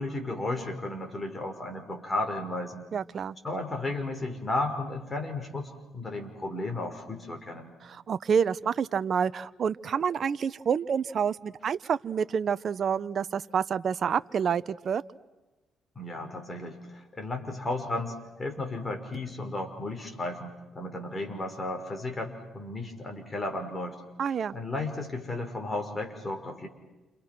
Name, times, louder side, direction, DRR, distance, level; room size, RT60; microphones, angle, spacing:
voice 1, 0.0-2.9 3.4-7.7 16.0-24.0 24.5-26.7, left 2 dB, 25° left, 4 dB, 5.7 m, -34 dB
voice 2, 2.9-3.4 7.8-15.0 24.2-24.5, right 7 dB, 55° right, 14 dB, 0.9 m, -28 dB
29.5 x 28.0 x 6.1 m, 1.1 s
cardioid pair, 90°, 0 cm